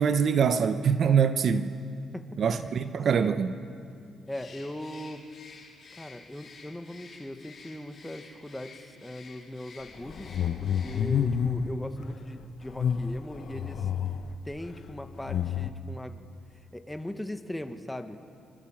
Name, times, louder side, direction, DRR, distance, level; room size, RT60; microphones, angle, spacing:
voice 1, 0.0-1.7 2.4-3.5, right 6 dB, 55° right, 1.1 m, -24 dB
Bird, 4.3-11.3, left 4 dB, 40° left, 5.6 m, -51 dB
voice 2, 4.3-5.3 6.0-10.3 10.6-13.9 14.5-16.2 16.7-18.2, left 1 dB, 5° left, 1.8 m, -39 dB
sound 1, 10.0-11.7 12.7-14.4 15.2-15.7, left 7 dB, 60° left, 1.3 m, -29 dB
26.0 x 26.0 x 7.5 m
cardioid pair, 90°, 0 cm